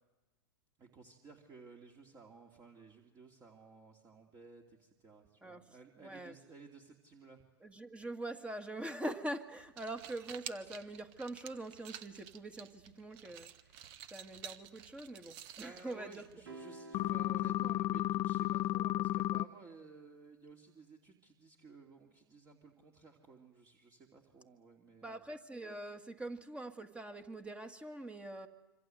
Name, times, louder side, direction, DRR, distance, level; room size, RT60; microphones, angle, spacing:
voice 1, 0.8-7.4 15.6-25.2, right 4 dB, 25° right, 1 dB, 2.9 m, -56 dB
voice 2, 5.4-6.4 7.6-13.5 14.1-16.2 25.0-28.5, right 1 dB, 10° right, 8 dB, 1.9 m, -44 dB
sound 1, 9.6-16.6, right 9 dB, 45° right, 1.4 m, -51 dB
sound 2, 16.5-18.9, right 2 dB, 80° right, 5.9 m, -53 dB
sound 3, 16.9-19.4, left 14 dB, 35° left, 0.8 m, -33 dB
26.0 x 26.0 x 7.9 m, 1.1 s
hypercardioid pair, 110°, 13 cm